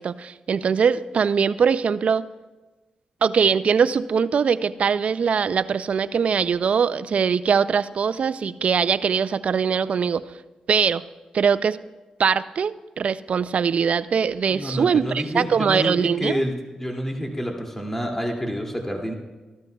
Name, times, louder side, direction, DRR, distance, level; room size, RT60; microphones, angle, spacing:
voice 1, 0.0-2.2 3.2-10.2 10.7-11.0 11.3-11.8 12.2-16.4, right 6 dB, 60° right, 15 dB, 0.4 m, -22 dB
voice 2, 14.5-19.1, equal, 15° left, 1 dB, 2.4 m, -28 dB
15.0 x 12.0 x 2.3 m, 1.2 s
supercardioid pair, 45°, 2 cm